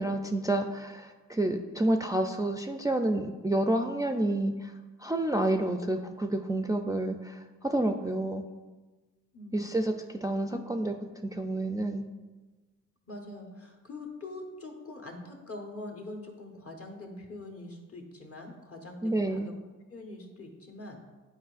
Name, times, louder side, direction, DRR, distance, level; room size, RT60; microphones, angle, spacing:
voice 1, 0.0-4.7 5.0-8.4 9.5-9.9 10.2-10.9 11.2-12.0 19.0-19.5, right 1 dB, 10° right, 4 dB, 0.3 m, -29 dB
voice 2, 9.3-9.6 10.5-10.6 13.1-19.5 19.9-21.0, left 2 dB, 50° left, 1 dB, 1.2 m, -43 dB
8.6 x 4.5 x 2.5 m, 1.3 s
cardioid pair, 60°, 30 cm